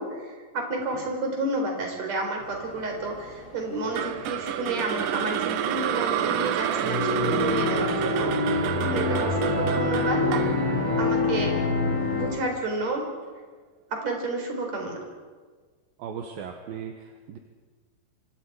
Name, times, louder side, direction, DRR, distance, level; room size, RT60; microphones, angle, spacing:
voice 1, 0.0-10.6 11.0-11.6 12.1-13.1 13.9-15.0, right 2 dB, 40° right, 2 dB, 5.1 m, -30 dB
sound 1, 2.4-12.3, left 3 dB, 35° left, 8.8 m, -28 dB
sound 2, 3.9-12.1, right 10 dB, 90° right, 1.9 m, -29 dB
voice 2, 16.0-17.4, right 7 dB, 65° right, 4 dB, 2.7 m, -37 dB
29.0 x 25.0 x 4.9 m, 1.5 s
omnidirectional pair, 5.1 m